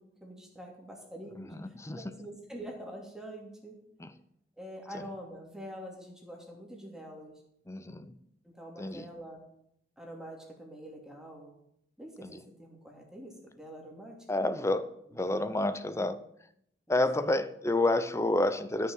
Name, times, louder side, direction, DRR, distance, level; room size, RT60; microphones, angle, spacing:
voice 1, 0.0-1.7 2.2-3.8 4.6-7.3 8.4-9.4 10.0-11.5 12.0-14.6 15.1-16.1 16.9-17.0, equal, 5° right, -1 dB, 2.8 m, -46 dB
voice 2, 1.4-2.0 4.0-4.1 4.9-5.0 7.7-8.1 8.8-9.1 14.3-16.2 16.9-18.9, left 2 dB, 15° left, 12 dB, 0.8 m, -29 dB
13.5 x 6.9 x 7.5 m, 0.73 s
head